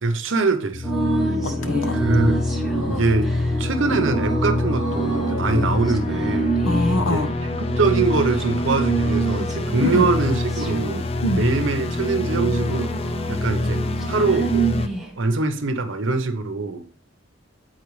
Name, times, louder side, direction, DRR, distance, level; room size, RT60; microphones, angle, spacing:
voice 1, 0.0-1.0 1.9-2.4 2.9-3.3 3.6-6.5 7.0-7.2 7.8-11.1 11.3-12.9 13.3-14.8 15.2-16.8, right 3 dB, 70° right, 8 dB, 0.8 m, -23 dB
sound 1, 0.7-14.9, left 2 dB, 30° left, 0.4 m, -26 dB
sound 2, 0.8-15.2, right 4 dB, ahead, 0.9 m, -27 dB
voice 2, 1.4-2.0 6.6-7.3 9.8-10.1 11.2-11.4, left 1 dB, 80° left, 9 dB, 0.8 m, -23 dB
8.3 x 4.4 x 3.1 m, 0.41 s
head